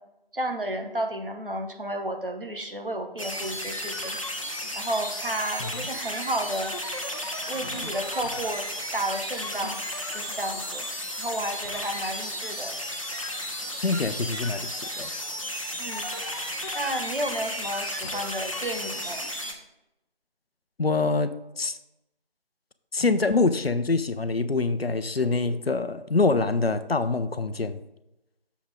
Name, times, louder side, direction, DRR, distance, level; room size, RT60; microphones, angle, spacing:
voice 1, 0.3-4.2 4.7-6.7 7.5-8.7 8.9-9.8 10.1-10.8 11.2-12.8 15.8-16.1 16.7-19.3, right 1 dB, 65° right, 5 dB, 1.4 m, -32 dB
sound 1, 3.2-19.5, equal, 35° left, 0.9 m, -33 dB
voice 2, 13.8-15.1 20.8-21.3 21.6-21.8 22.9-27.8, left 3 dB, 85° left, 11 dB, 0.7 m, -25 dB
7.2 x 7.0 x 3.6 m, 0.90 s
figure-of-eight pair, 170°, 30 cm